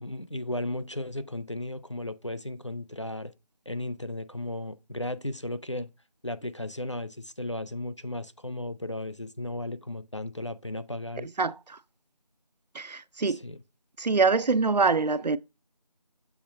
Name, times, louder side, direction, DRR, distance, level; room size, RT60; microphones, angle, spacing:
voice 1, 0.0-3.3 3.7-5.9 6.2-11.3 13.2-13.6, left 1 dB, 45° left, 0.5 m, -35 dB
voice 2, 12.8-13.4 14.0-15.4, right 4 dB, 80° right, 0.5 m, -24 dB
7.2 x 2.9 x 5.0 m
figure-of-eight pair, 175°, 21 cm